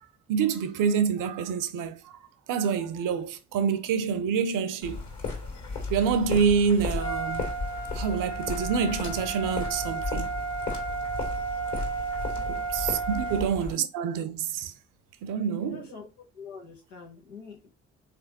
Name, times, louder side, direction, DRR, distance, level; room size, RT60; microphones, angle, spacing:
voice 1, 0.3-2.1 2.5-5.0 5.9-7.5 7.9-10.3 12.5-14.7 15.2-15.9, right 6 dB, 60° right, 0.6 m, -27 dB
sound 1, 4.8-13.7, left 4 dB, 50° left, 1.9 m, -35 dB
Trumpet, 7.0-13.5, right 4 dB, 30° left, 1.4 m, -33 dB
voice 2, 12.3-12.6 13.1-13.3 15.3-17.7, left 5 dB, 85° left, 1.0 m, -46 dB
3.6 x 3.4 x 2.8 m
hypercardioid pair, 40°, 37 cm